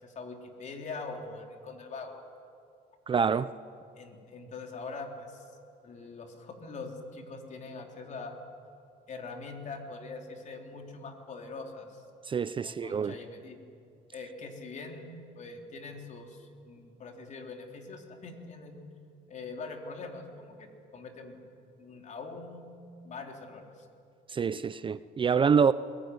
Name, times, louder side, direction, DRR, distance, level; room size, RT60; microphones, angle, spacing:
voice 1, 0.0-2.2 4.0-5.4 5.8-8.3 9.1-12.0 12.6-13.6 14.1-18.8 19.3-21.4 21.8-22.7 23.0-23.9, left 3 dB, 45° left, 2 dB, 3.8 m, -43 dB
voice 2, 3.1-3.5 12.2-13.1 24.3-25.7, right 6 dB, 30° right, 15 dB, 0.5 m, -26 dB
22.5 x 22.0 x 9.6 m, 2.4 s
cardioid pair, 110°, 17 cm